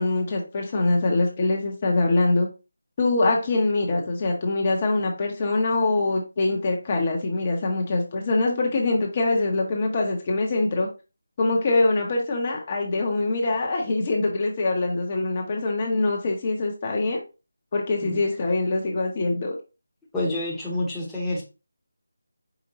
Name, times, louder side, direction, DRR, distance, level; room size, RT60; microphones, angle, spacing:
voice 1, 0.0-2.5 3.0-10.9 11.4-17.2 17.7-19.5, left 2 dB, 30° left, 1 dB, 0.9 m, -24 dB
voice 2, 20.1-21.4, left 1 dB, 5° left, -8 dB, 0.9 m, -28 dB
5.0 x 3.6 x 2.9 m, 0.31 s
figure-of-eight pair, 165°, 0 cm